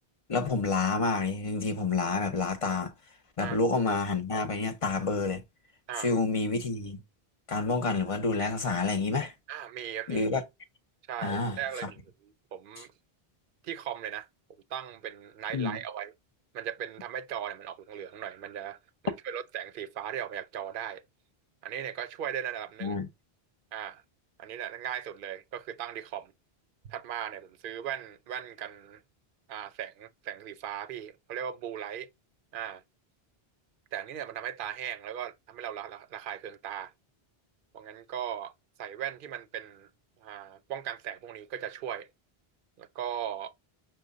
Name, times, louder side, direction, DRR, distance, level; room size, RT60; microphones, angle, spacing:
voice 1, 0.3-2.9 3.4-5.4 6.0-7.0 7.5-9.3 10.1-10.4 11.2-11.9 15.5-15.8 22.8-23.1, left 3 dB, 35° left, 0.8 m, -28 dB
voice 2, 9.5-10.3 11.1-12.9 13.6-14.3 14.7-16.1 16.5-18.8 19.0-21.0 21.6-23.0 23.7-24.0 24.4-26.3 26.8-29.0 29.5-32.1 32.5-32.8 33.9-36.9 37.7-38.5 38.8-39.9 40.2-42.1 42.8-43.5, right 9 dB, 60° right, 0.7 m, -38 dB
6.3 x 2.2 x 3.8 m
omnidirectional pair, 1.0 m